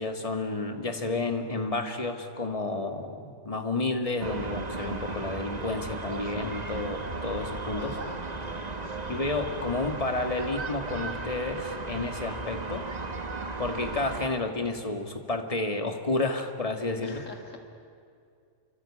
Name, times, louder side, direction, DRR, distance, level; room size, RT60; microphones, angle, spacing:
voice 1, 0.0-8.0 9.1-12.8 13.6-17.2, left 2 dB, 25° left, 5 dB, 2.0 m, -31 dB
sound 1, 4.2-14.3, right 3 dB, 30° right, 1.4 m, -36 dB
voice 2, 7.8-9.2 17.0-17.6, left 2 dB, 60° left, 3 dB, 2.8 m, -44 dB
27.5 x 25.0 x 8.6 m, 2.3 s
omnidirectional pair, 1.5 m